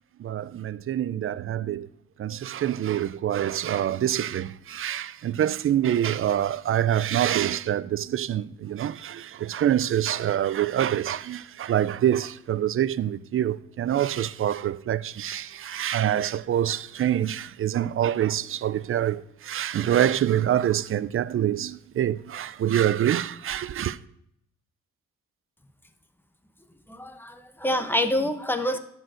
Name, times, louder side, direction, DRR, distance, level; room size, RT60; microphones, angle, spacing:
voice 1, 0.2-1.9 2.2-24.0, right 11 dB, 45° right, 0.5 m, -26 dB
voice 2, 26.9-28.8, left 1 dB, 5° left, 1.0 m, -26 dB
12.5 x 4.6 x 6.3 m
cardioid pair, 90°, 30 cm